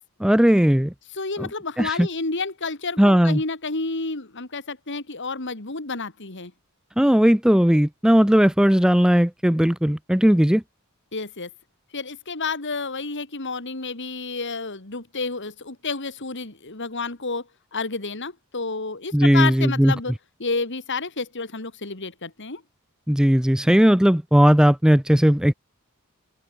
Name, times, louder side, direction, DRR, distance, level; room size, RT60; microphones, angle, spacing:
voice 1, 0.2-0.9 1.4-1.5 1.8-2.1 3.0-3.4 7.0-10.6 19.1-19.9 23.1-25.5, equal, 5° right, 0.5 m, -17 dB
voice 2, 1.1-6.5 11.1-11.5 11.9-17.5 17.7-20.1 20.4-22.6, left 3 dB, 55° left, 2.9 m, -30 dB
open air
head